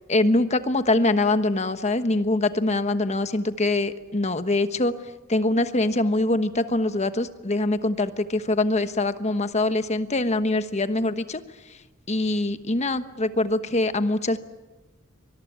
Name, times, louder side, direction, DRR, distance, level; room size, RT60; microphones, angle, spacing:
voice 1, 0.1-4.9 5.3-11.4 12.1-14.4, left 2 dB, 35° left, 11 dB, 1.2 m, -23 dB
24.5 x 21.0 x 9.5 m, 1.2 s
head